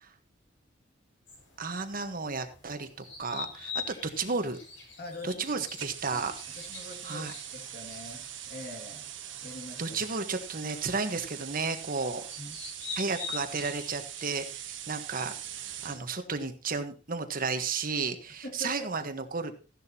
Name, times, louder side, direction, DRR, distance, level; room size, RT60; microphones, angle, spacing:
sound 1, 1.3-16.1, left 6 dB, 80° left, 5.6 m, -46 dB
voice 1, 1.6-4.6 5.2-6.3 7.0-7.3 9.8-12.2 13.0-19.5, right 4 dB, 50° right, 8 dB, 1.3 m, -33 dB
voice 2, 5.0-5.7 6.1-6.2 6.5-9.1 9.4-10.0 12.4-12.6 18.4-18.9, left 1 dB, 55° left, 4 dB, 2.3 m, -44 dB
sound 2, 5.8-16.0, right 11 dB, 80° right, 1.5 m, -42 dB
14.5 x 11.0 x 2.9 m, 0.33 s
head